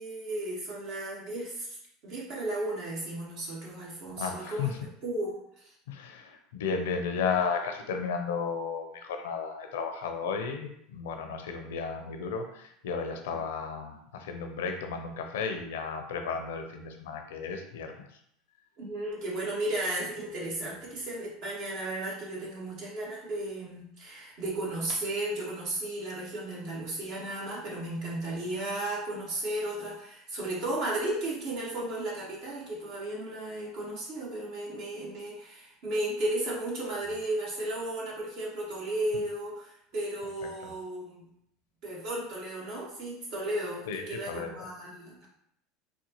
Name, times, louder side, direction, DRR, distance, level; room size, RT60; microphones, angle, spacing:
voice 1, 0.0-1.8 2.0-5.7 13.3-13.4 18.8-41.2 41.8-45.3, right 1 dB, 60° right, -4 dB, 1.5 m, -34 dB
voice 2, 4.2-4.8 5.9-18.1 43.9-44.5, left 5 dB, 80° left, 5 dB, 0.5 m, -34 dB
4.1 x 2.2 x 2.9 m, 0.72 s
hypercardioid pair, 95°, 0 cm